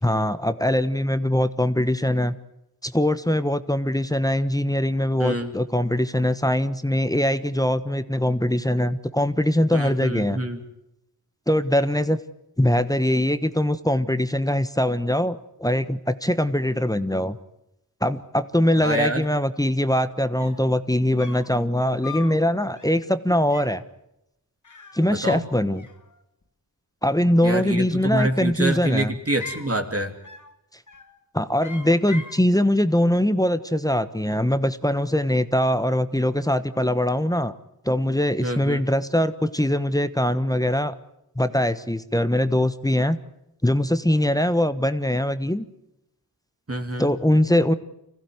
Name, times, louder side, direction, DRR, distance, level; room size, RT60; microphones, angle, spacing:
voice 1, 0.0-2.3 2.8-10.4 11.5-12.2 12.6-17.4 18.0-23.8 24.9-25.8 27.0-29.1 31.3-37.5 37.8-41.0 41.4-43.2 43.6-45.6 47.0-47.7, left 1 dB, 10° left, 12 dB, 1.2 m, -22 dB
voice 2, 5.2-5.5 9.7-10.6 18.8-19.2 25.1-25.5 27.4-30.1 38.4-38.8 46.7-47.1, right 1 dB, 35° right, 5 dB, 3.0 m, -26 dB
sound 1, 20.1-20.2 20.4-20.7 21.2-21.6 22.0-22.4 22.8-23.1 23.5-23.8 24.6-25.5 25.8-26.5 27.7-28.3 28.8-29.7 30.2-30.6 30.9-31.2 31.6-32.4, left 4 dB, 50° left, 2.3 m, -41 dB
25.0 x 15.5 x 9.5 m, 0.86 s
cardioid pair, 40°, 39 cm